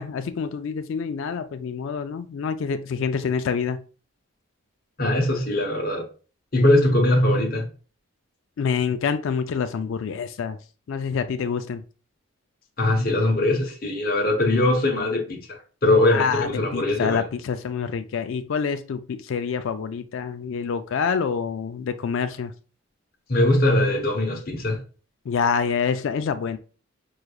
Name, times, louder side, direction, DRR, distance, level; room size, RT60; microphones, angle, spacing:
voice 1, 0.0-3.8 8.6-10.6 10.9-11.8 16.1-22.5 25.3-26.6, left 6 dB, 60° left, 0.3 m, -27 dB
voice 2, 5.0-6.0 6.5-7.6 12.8-17.2 23.3-24.8, left 1 dB, 45° left, 0.8 m, -21 dB
4.6 x 3.3 x 2.3 m
head